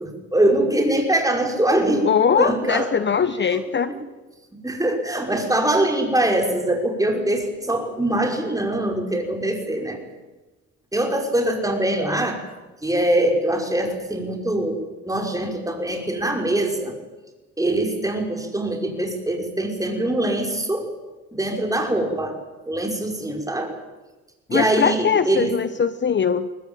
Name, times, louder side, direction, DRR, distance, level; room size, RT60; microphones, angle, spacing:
voice 1, 0.0-2.1 2.4-2.9 3.4-4.0 4.5-10.0 10.9-12.4 12.8-16.9 17.6-20.9 21.3-22.4 22.7-23.7 24.5-25.5, right 1 dB, 10° right, 2 dB, 5.7 m, -23 dB
voice 2, 2.0-3.9 24.5-26.5, left 7 dB, 35° left, 12 dB, 1.0 m, -21 dB
22.5 x 19.5 x 9.2 m, 1.2 s
cardioid pair, 90°, 30 cm